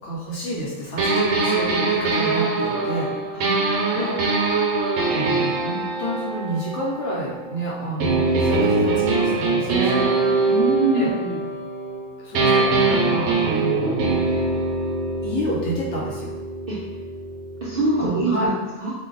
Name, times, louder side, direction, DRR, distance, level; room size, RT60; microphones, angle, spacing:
voice 1, 0.0-3.1 3.9-4.5 5.1-10.5 10.9-11.1 12.2-14.2 15.2-16.3 18.0-18.5, right 1 dB, 60° left, -5 dB, 0.9 m, -29 dB
sound 1, 1.0-7.5 8.0-12.0 12.3-18.1, right 3 dB, 75° right, 1.1 m, -23 dB
voice 2, 3.3-4.1 10.5-11.4 16.7-16.8 17.6-18.5 18.8-18.9, right 3 dB, 60° right, -8 dB, 0.6 m, -24 dB
2.6 x 2.2 x 3.7 m, 1.2 s
omnidirectional pair, 1.5 m